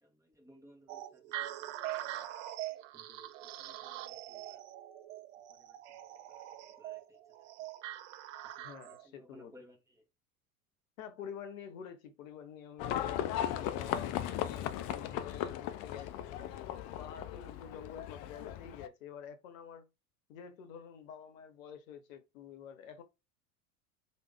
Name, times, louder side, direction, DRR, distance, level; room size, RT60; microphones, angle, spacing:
voice 1, 0.0-2.3 2.9-3.3 3.6-4.6 5.5-5.8 6.3-7.0 7.6-7.7 8.6-9.8, equal, 5° right, 1.0 m, -61 dB
sound 1, 0.9-9.1, right 13 dB, 55° right, 0.5 m, -43 dB
voice 2, 8.6-9.6 11.0-16.5 17.0-19.9 20.3-23.0, left 7 dB, 60° left, 0.9 m, -48 dB
Livestock farm animals working animals, 12.8-18.9, left 11 dB, 40° left, 0.5 m, -37 dB
3.4 x 2.5 x 3.4 m
figure-of-eight pair, 75°, 45 cm